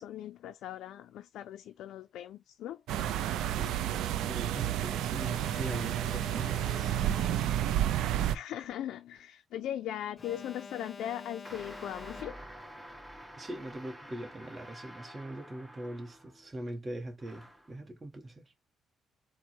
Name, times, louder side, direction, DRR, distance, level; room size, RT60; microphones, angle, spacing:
voice 1, 0.0-2.8 8.3-12.4, left 11 dB, 80° left, 0.3 m, -39 dB
sound 1, 2.9-8.4, right 11 dB, 85° right, 0.4 m, -30 dB
voice 2, 3.5-7.0 13.4-18.5, right 1 dB, 25° right, 1.1 m, -42 dB
Alarm, 5.2-7.7 10.2-12.7, left 4 dB, 35° left, 0.7 m, -48 dB
sound 2, 11.4-16.5 17.2-17.7, equal, 5° left, 2.8 m, -49 dB
4.4 x 2.1 x 4.3 m
cardioid pair, 90°, 0 cm